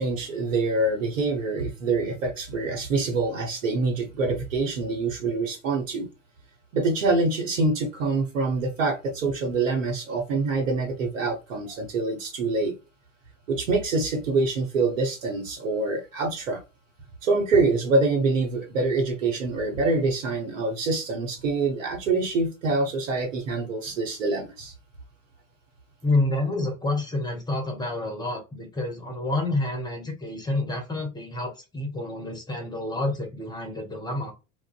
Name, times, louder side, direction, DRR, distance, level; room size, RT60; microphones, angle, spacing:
voice 1, 0.0-6.1 6.7-12.7 13.5-16.6 17.2-24.7, right 3 dB, 75° right, 3 dB, 0.9 m, -25 dB
voice 2, 26.0-34.3, left 2 dB, 10° left, 2 dB, 0.7 m, -28 dB
2.5 x 2.0 x 2.4 m, 0.29 s
hypercardioid pair, 85°, 40 cm